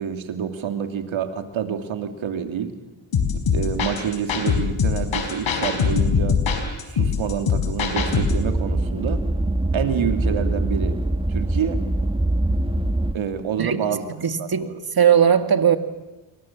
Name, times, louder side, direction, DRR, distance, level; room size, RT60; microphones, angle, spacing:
voice 1, 0.0-2.7 3.5-6.4 6.8-9.2 9.7-11.0 11.3-11.9 13.1-14.0 14.4-14.8, right 8 dB, 85° right, 2.8 m, -27 dB
sound 1, 3.1-8.5, left 6 dB, 80° left, 5.0 m, -22 dB
sound 2, 8.0-13.2, right 1 dB, 10° right, 1.8 m, -23 dB
voice 2, 14.2-15.8, right 8 dB, 50° right, 2.2 m, -18 dB
28.5 x 23.5 x 7.4 m
cardioid pair, 70°, 46 cm